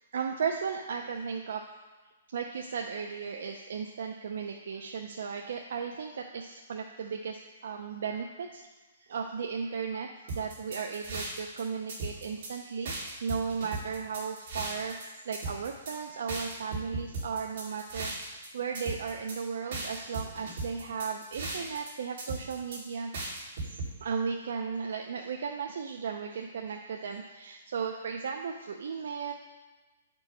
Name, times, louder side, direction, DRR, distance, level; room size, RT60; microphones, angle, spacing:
voice 1, 0.1-1.6 2.3-8.6 9.1-23.1 23.6-29.3, right 6 dB, 55° right, 2 dB, 0.6 m, -35 dB
sound 1, 10.3-11.6 11.9-12.5 12.8-15.0 15.3-15.9 16.3-18.5 18.7-19.4 19.7-21.9 22.2-22.8 23.1-23.9, right 2 dB, 40° right, 2.2 m, -37 dB
9.3 x 4.5 x 5.3 m, 1.3 s
hypercardioid pair, 180°, 0 cm